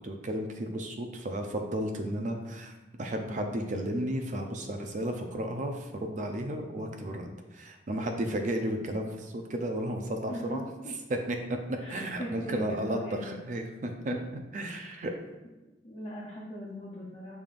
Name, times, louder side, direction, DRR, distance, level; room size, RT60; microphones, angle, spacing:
voice 1, 0.0-2.7 3.0-10.6 11.1-14.1 14.5-15.1, right 1 dB, 40° right, 4 dB, 0.5 m, -33 dB
voice 2, 3.3-3.7 10.3-10.9 11.8-13.3 14.1-14.2 14.8-15.1 15.8-17.4, equal, 30° left, -5 dB, 0.5 m, -39 dB
5.4 x 3.4 x 2.4 m, 1.1 s
head